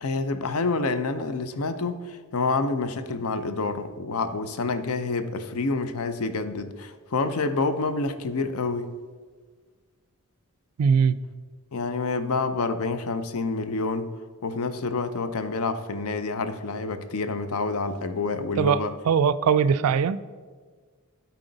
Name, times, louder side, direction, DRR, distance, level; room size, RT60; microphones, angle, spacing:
voice 1, 0.0-8.9 11.7-14.1 14.4-18.9, left 3 dB, 70° left, 0.6 m, -28 dB
voice 2, 10.8-11.2 18.6-20.2, right 6 dB, 70° right, 0.3 m, -21 dB
12.5 x 4.3 x 3.9 m
head